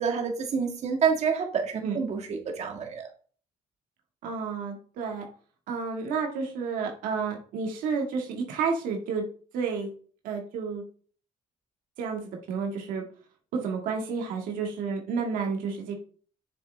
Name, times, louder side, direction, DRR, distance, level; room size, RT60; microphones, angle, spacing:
voice 1, 0.0-3.1, right 6 dB, 55° right, 3 dB, 1.7 m, -28 dB
voice 2, 4.2-5.2 5.7-9.3 9.5-9.9 10.2-10.8 12.0-13.0 13.5-16.0, right 5 dB, 90° right, 2 dB, 1.9 m, -30 dB
7.0 x 6.8 x 3.4 m, 0.43 s
cardioid pair, 110°, 14 cm